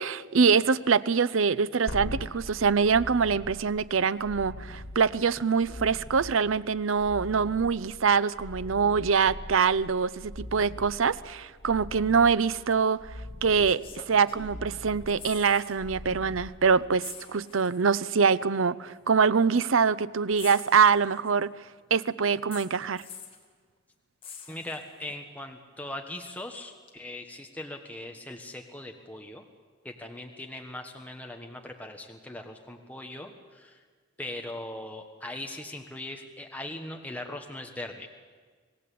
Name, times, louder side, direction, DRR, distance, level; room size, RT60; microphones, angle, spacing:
voice 1, 0.0-13.0 13.4-13.8 14.1-21.5 21.9-23.0, right 5 dB, 90° right, 16 dB, 0.6 m, -24 dB
sound 1, 1.9-17.2 20.3-20.4, left 1 dB, 90° left, 2.5 m, -42 dB
sound 2, 12.7-12.8 13.6-14.7 15.0-15.8 16.1-16.3 17.0-17.9 18.9-19.0 20.4-21.4 22.5-23.5 24.2-25.1 26.9-27.0, left 6 dB, 30° left, 2.4 m, -45 dB
voice 2, 24.5-29.4 29.8-33.8 34.2-38.1, left 1 dB, 10° left, 3 dB, 1.4 m, -40 dB
26.0 x 18.0 x 8.5 m, 1.5 s
head